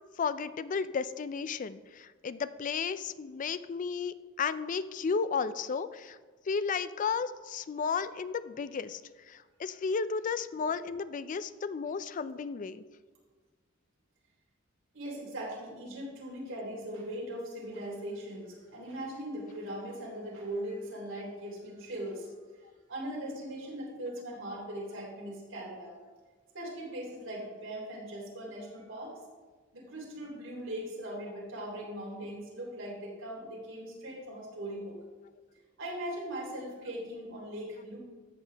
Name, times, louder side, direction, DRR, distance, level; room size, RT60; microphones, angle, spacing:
voice 1, 0.2-6.2 6.5-9.0 9.3-12.8, left 5 dB, 40° left, 14 dB, 0.4 m, -33 dB
voice 2, 14.9-22.3 22.9-25.9 26.5-29.1 29.7-35.0 35.8-38.0, right 1 dB, 65° right, -4 dB, 3.4 m, -40 dB
13.5 x 7.8 x 3.4 m, 1.4 s
head